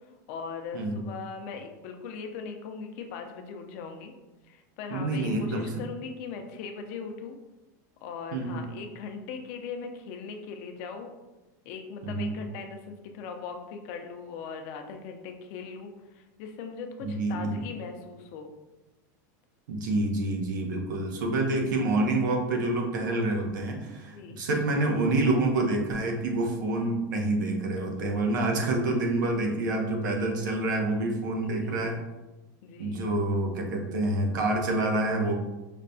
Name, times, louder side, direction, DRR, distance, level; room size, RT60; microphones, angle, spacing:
voice 1, 0.3-4.1 4.4-7.4 8.0-11.1 11.6-18.5 24.1-24.4 27.7-28.1 31.4-32.1 32.6-33.0, left 5 dB, 55° left, 5 dB, 0.5 m, -40 dB
voice 2, 4.9-5.7 8.3-8.6 12.0-12.4 17.0-17.6 19.7-32.0 32.8-35.3, right 2 dB, 90° right, 2 dB, 0.8 m, -27 dB
5.0 x 2.2 x 2.6 m, 1.1 s
supercardioid pair, 150°, 10 cm